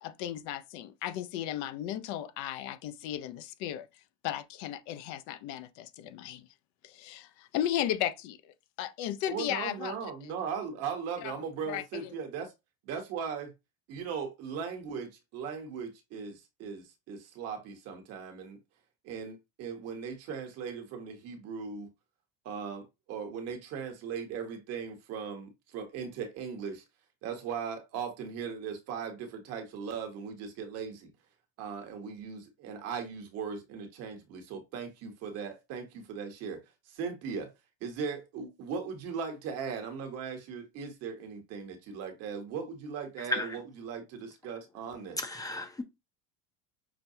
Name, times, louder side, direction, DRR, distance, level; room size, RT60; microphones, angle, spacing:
voice 1, 0.0-3.9 4.2-6.4 6.8-8.5 8.8-10.0 11.2-11.3 11.7-12.1, left 11 dB, 60° left, 0.7 m, -35 dB
voice 2, 9.3-12.5 12.8-13.5 13.9-18.6 19.0-21.9 22.4-26.8 27.2-31.1 31.6-36.6 36.9-37.5 37.8-45.2, right 6 dB, 45° right, 1.3 m, -38 dB
voice 3, 45.2-45.8, left 2 dB, 10° left, 0.7 m, -33 dB
5.9 x 2.2 x 2.8 m
supercardioid pair, 125°, 33 cm